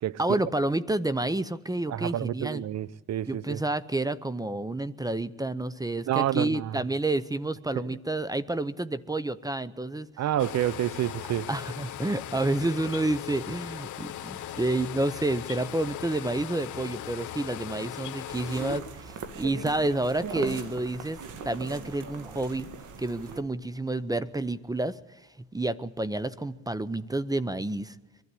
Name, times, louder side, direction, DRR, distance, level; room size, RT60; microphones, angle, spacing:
voice 1, 0.2-2.6 3.3-10.1 11.5-21.2 21.4-22.7 23.0-28.0, right 2 dB, 10° right, 0.7 m, -29 dB
voice 2, 1.9-3.6 6.1-6.8 7.9-8.0 10.2-11.5, right 12 dB, 60° right, 0.6 m, -29 dB
sound 1, 10.4-18.8, left 12 dB, 75° left, 1.2 m, -39 dB
sound 2, 18.3-23.4, right 5 dB, 80° right, 1.9 m, -40 dB
23.0 x 12.5 x 9.8 m
cardioid pair, 90°, 30 cm